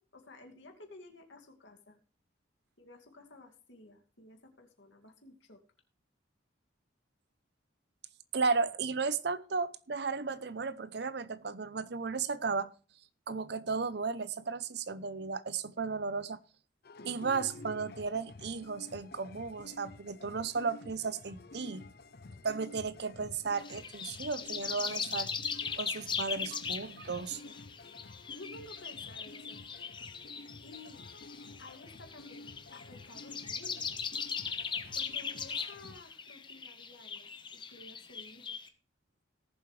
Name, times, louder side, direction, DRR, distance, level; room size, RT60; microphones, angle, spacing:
voice 1, 0.0-2.0 2.8-5.6 28.3-29.7 30.6-31.0 31.6-33.9 34.9-38.6, left 2 dB, 75° left, 2.4 m, -53 dB
voice 2, 8.3-12.7 13.3-16.4 17.0-21.8 22.4-25.3 25.8-27.5, right 4 dB, 55° right, 0.7 m, -34 dB
sound 1, 16.8-36.0, left 2 dB, 55° left, 0.6 m, -51 dB
sound 2, 23.5-38.7, left 6 dB, 25° left, 1.0 m, -39 dB
18.0 x 7.4 x 3.3 m
head